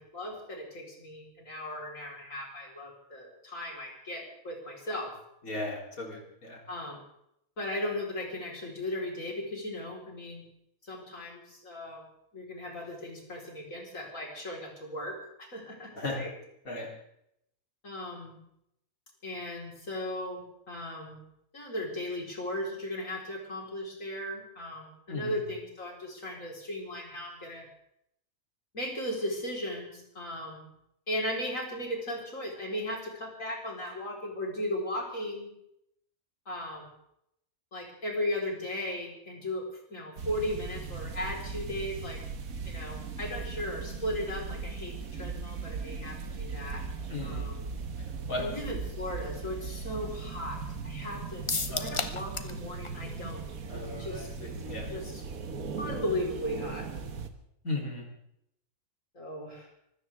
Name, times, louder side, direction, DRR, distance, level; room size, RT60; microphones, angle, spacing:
voice 1, 0.0-5.1 6.7-7.0 7.6-10.4 10.8-12.0 12.3-16.3 16.8-16.9 17.8-18.4 19.2-21.2 21.5-27.7 28.7-30.7 31.1-35.5 36.5-36.9 37.7-42.2 42.6-46.8 47.2-47.6 48.4-50.6 50.8-51.4 51.8-53.5 53.7-54.5 54.9-55.2 55.8-56.9 59.1-59.7, left 1 dB, 70° left, -1 dB, 4.8 m, -37 dB
voice 2, 5.4-6.6 15.9-16.2 16.7-16.9 25.1-25.3 47.1-47.5 48.3-48.5 51.7-52.0 53.7-54.9 57.6-58.0, left 2 dB, 85° left, -1 dB, 4.2 m, -36 dB
sound 1, 40.2-57.3, right 5 dB, 80° right, 1.8 m, -38 dB
sound 2, 51.5-52.6 52.8-52.9 53.3-53.4, left 3 dB, 25° left, 0.9 m, -32 dB
24.5 x 16.5 x 3.6 m, 0.76 s
omnidirectional pair, 1.4 m